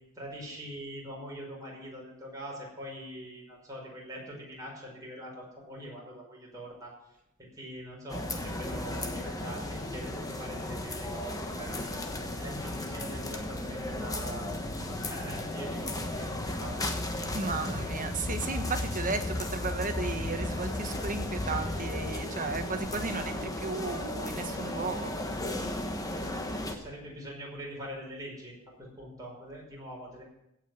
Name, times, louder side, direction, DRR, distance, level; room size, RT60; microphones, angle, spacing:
voice 1, 0.2-6.9 7.4-11.9 12.4-14.5 14.8-17.0 17.4-17.9 26.5-28.5 28.8-30.2, equal, 15° right, -3 dB, 5.4 m, -43 dB
sound 1, 8.1-26.8, left 1 dB, 15° left, 1.2 m, -35 dB
voice 2, 17.3-25.1, right 3 dB, 40° right, 7 dB, 1.3 m, -34 dB
16.5 x 6.0 x 9.0 m, 0.84 s
head